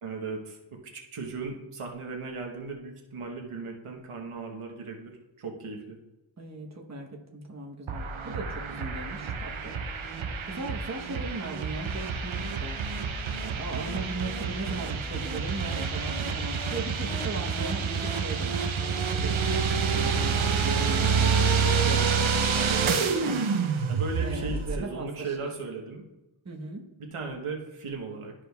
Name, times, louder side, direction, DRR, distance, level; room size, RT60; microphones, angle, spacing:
voice 1, 0.0-6.0 22.5-23.2 23.9-26.0 27.0-28.3, right 4 dB, 85° right, 1 dB, 1.1 m, -37 dB
voice 2, 6.4-9.7 10.5-12.8 13.5-19.4 19.8-21.4 21.8-23.3 24.2-25.5 26.4-26.8, right 2 dB, 35° right, 0 dB, 1.1 m, -38 dB
sound 1, 7.9-24.8, right 5 dB, 70° right, 0.8 m, -28 dB
12.5 x 4.9 x 2.3 m, 1.0 s
wide cardioid pair, 65°, 50 cm